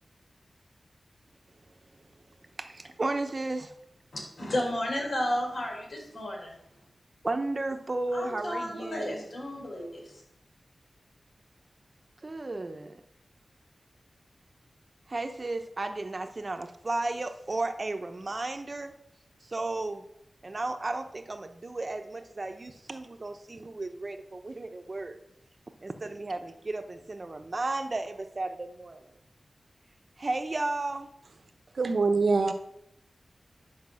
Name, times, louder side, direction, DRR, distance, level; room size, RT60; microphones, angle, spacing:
voice 1, 2.6-3.7 7.2-9.2 12.2-13.0 15.1-18.9 19.5-20.0 20.4-25.2 25.8-29.0 30.2-31.1, right 2 dB, 40° right, 7 dB, 0.9 m, -34 dB
voice 2, 4.1-6.5 8.1-10.1, left 1 dB, 70° left, 0 dB, 4.0 m, -32 dB
voice 3, 31.8-32.5, right 4 dB, 70° right, 7 dB, 1.0 m, -24 dB
10.5 x 5.2 x 6.5 m, 0.77 s
wide cardioid pair, 70°, 0 cm